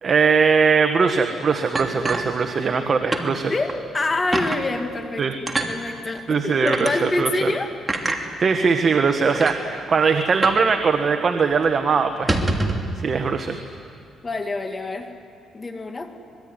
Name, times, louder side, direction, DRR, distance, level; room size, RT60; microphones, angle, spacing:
voice 1, 0.0-3.5 5.2-5.3 6.3-7.5 8.4-12.4 13.0-13.6, right 5 dB, 45° right, 6 dB, 1.6 m, -20 dB
sound 1, 1.8-2.8 3.1-3.3 3.7-3.8 4.3-4.6 5.5-5.7 6.7-6.9 7.9-8.2 9.0-9.1 9.4-9.6 10.4-10.7 10.9-11.0 11.4-11.6 12.1-12.9, right 2 dB, 20° right, 2.8 m, -25 dB
voice 2, 3.5-7.7 14.2-15.1 15.5-16.1, left 2 dB, 30° left, 5 dB, 2.3 m, -26 dB
25.5 x 22.5 x 9.8 m, 2.4 s
cardioid pair, 90°, 0 cm